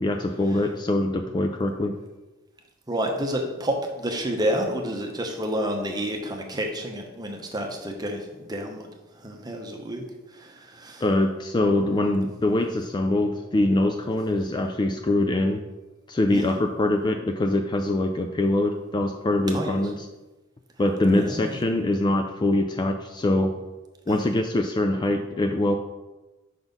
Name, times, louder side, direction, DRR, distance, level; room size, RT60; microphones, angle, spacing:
voice 1, 0.0-1.9 11.0-15.6 16.1-20.0 20.8-23.6 24.1-25.7, left 1 dB, 20° left, 5 dB, 0.3 m, -23 dB
voice 2, 2.9-11.0 16.3-16.6 19.5-19.8 21.2-21.6 24.1-24.2, equal, 20° right, 2 dB, 0.8 m, -30 dB
5.9 x 4.0 x 5.2 m, 1.1 s
head